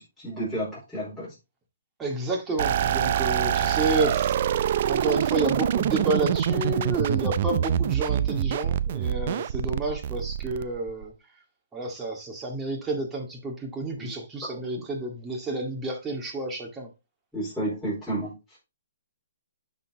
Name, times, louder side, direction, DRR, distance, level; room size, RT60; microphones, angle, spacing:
voice 1, 0.0-1.3 14.0-14.2 14.4-14.6 17.3-18.3, right 1 dB, ahead, 4.3 m, -32 dB
voice 2, 2.0-4.4 4.9-11.1 11.7-16.9, right 2 dB, 15° right, 1.9 m, -30 dB
sound 1, 2.6-11.0, right 10 dB, 50° right, 0.4 m, -25 dB
11.5 x 4.1 x 2.9 m
hypercardioid pair, 140°, 0 cm